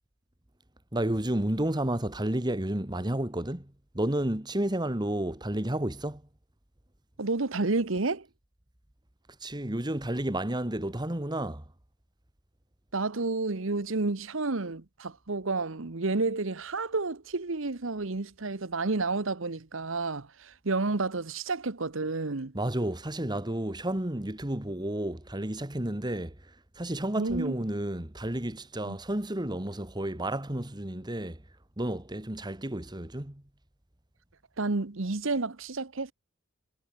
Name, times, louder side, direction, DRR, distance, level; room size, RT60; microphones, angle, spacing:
voice 1, 0.9-6.2 9.4-11.6 22.5-31.4 31.8-33.4, right 1 dB, 20° right, 1.6 m, -31 dB
voice 2, 7.2-8.3 12.9-22.5 27.2-27.5 28.8-29.0 34.6-36.1, right 3 dB, 65° right, 1.1 m, -30 dB
head